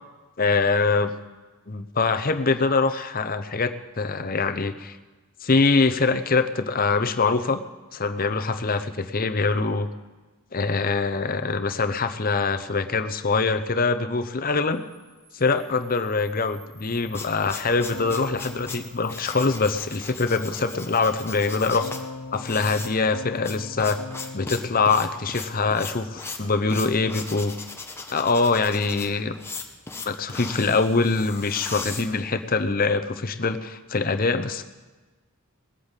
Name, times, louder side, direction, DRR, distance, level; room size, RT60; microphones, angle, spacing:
voice 1, 0.4-1.1 1.7-5.0 5.4-7.6 7.9-9.9 10.5-14.8 15.3-21.9 22.3-24.0 24.3-27.6 28.1-29.3 30.0-34.6, left 4 dB, 40° left, 9 dB, 0.8 m, -24 dB
Camera, 14.7-21.7, right 3 dB, 30° right, 3.7 m, -50 dB
sound 1, 16.8-32.7, left 3 dB, 10° left, 1.1 m, -38 dB
Keyboard (musical), 17.9-20.2 21.8-26.1, left 3 dB, 90° left, 0.6 m, -41 dB
19.5 x 8.6 x 8.3 m, 1.2 s
head